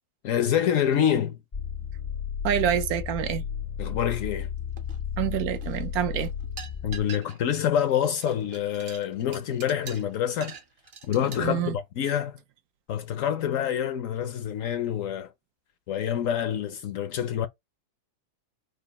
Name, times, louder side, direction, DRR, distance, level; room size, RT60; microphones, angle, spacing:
voice 1, 0.2-1.4 3.8-4.5 6.8-10.5 11.1-12.4 12.9-15.3 15.9-17.5, left 9 dB, 65° left, 0.8 m, -26 dB
sound 1, 1.5-7.0, left 8 dB, 45° left, 0.4 m, -33 dB
voice 2, 2.4-3.4 5.2-6.3 11.4-11.7, right 11 dB, 70° right, 1.1 m, -27 dB
sound 2, 4.8-5.3 5.5-7.6 7.9-11.4, right 7 dB, 50° right, 0.8 m, -44 dB
5.2 x 2.4 x 3.9 m
omnidirectional pair, 1.7 m